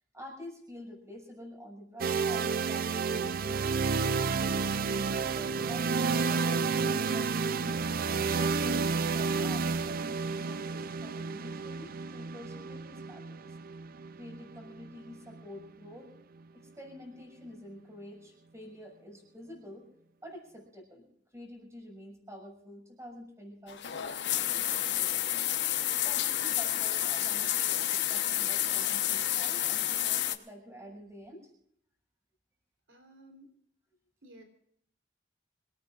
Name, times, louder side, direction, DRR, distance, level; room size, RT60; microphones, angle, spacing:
voice 1, 0.1-3.8 4.3-7.8 8.3-13.5 14.2-16.1 16.5-19.9 20.2-21.1 21.3-25.5 26.0-31.5, equal, 15° right, 0 dB, 6.7 m, -48 dB
sound 1, 2.0-15.9, right 4 dB, 50° right, 0.5 m, -31 dB
sound 2, 23.7-30.4, left 12 dB, 65° left, 1.1 m, -30 dB
voice 2, 32.9-33.5 34.2-34.4, right 1 dB, 85° right, 3 dB, 3.7 m, -54 dB
26.5 x 18.5 x 2.5 m, 0.68 s
head